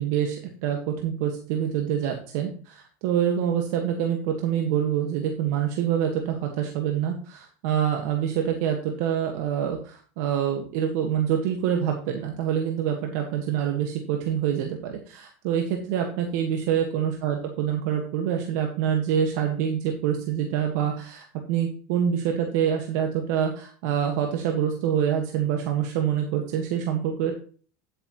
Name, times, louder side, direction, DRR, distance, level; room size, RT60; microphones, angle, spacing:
voice 1, 0.0-27.3, right 9 dB, 70° right, 3 dB, 1.7 m, -26 dB
10.0 x 8.7 x 3.1 m, 0.41 s
supercardioid pair, 115°, 10 cm